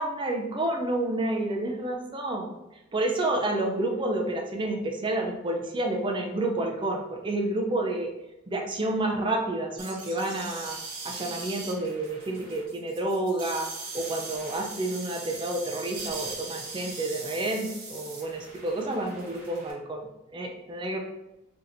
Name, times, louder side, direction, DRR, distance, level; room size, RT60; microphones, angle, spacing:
voice 1, 0.0-2.5 2.9-8.1 8.5-10.8 11.0-13.7 13.9-21.0, right 2 dB, 25° right, 1 dB, 0.4 m, -29 dB
sound 1, 9.8-19.7, right 3 dB, 40° right, 0.8 m, -40 dB
4.0 x 2.8 x 2.5 m, 0.97 s
head